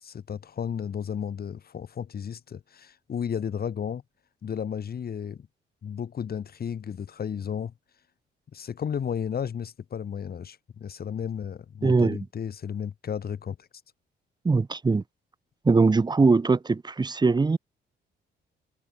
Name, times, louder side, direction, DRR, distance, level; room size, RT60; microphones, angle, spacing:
voice 1, 0.0-4.0 4.4-5.5 5.8-7.7 8.5-13.6, left 8 dB, 50° left, 2.9 m, -33 dB
voice 2, 11.8-12.3 14.4-15.0 15.6-17.6, right 4 dB, 20° right, 1.0 m, -21 dB
cardioid pair, 90°, 20 cm